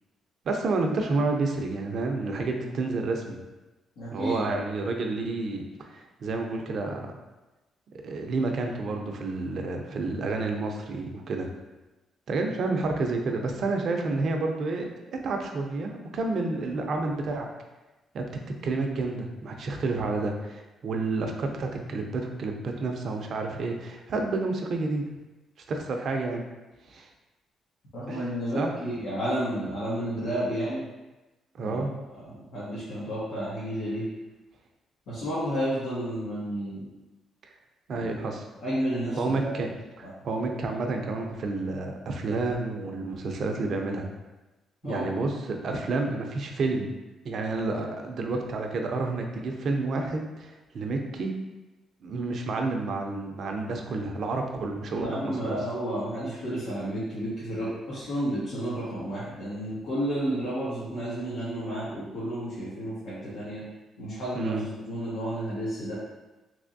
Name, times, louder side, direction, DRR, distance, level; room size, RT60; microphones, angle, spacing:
voice 1, 0.4-3.4 4.1-7.1 8.0-11.5 12.3-17.5 18.1-18.2 18.6-25.0 25.7-26.4 26.9-27.1 28.1-28.2 28.5-28.7 31.5-31.9 37.9-38.5 39.2-39.7 40.0-44.1 44.8-46.9 47.2-51.4 52.0-55.6 64.4-64.7, right 3 dB, 60° right, 3 dB, 0.5 m, -30 dB
voice 2, 4.0-4.4 27.9-30.9 31.6-31.8 32.1-34.1 35.1-36.8 37.9-38.1 38.6-39.5 44.8-45.1 55.0-63.6 64.0-65.9, equal, 80° left, -11 dB, 1.3 m, -31 dB
3.3 x 3.0 x 2.6 m, 1.1 s
cardioid pair, 90°, 0 cm